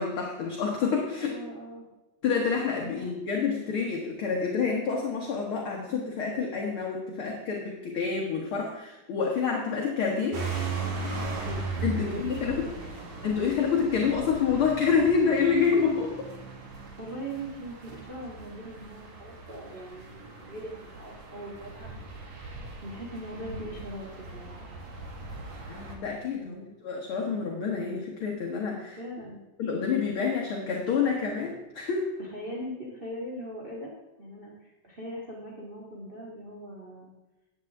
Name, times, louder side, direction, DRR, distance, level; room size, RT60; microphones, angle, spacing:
voice 1, 0.0-1.3 2.2-10.4 11.8-12.7 13.2-16.2 25.7-29.0 29.6-32.1, left 5 dB, 55° left, -1 dB, 1.9 m, -28 dB
voice 2, 1.2-1.8 2.8-3.0 10.8-11.7 12.1-13.1 17.0-22.1 22.8-24.6 26.4-26.7 29.0-29.4 32.2-33.9 34.2-37.1, right 1 dB, 20° right, -3 dB, 1.6 m, -40 dB
sound 1, 10.3-26.0, right 3 dB, 70° right, 3.0 m, -38 dB
15.5 x 9.5 x 3.6 m, 1.0 s
omnidirectional pair, 3.3 m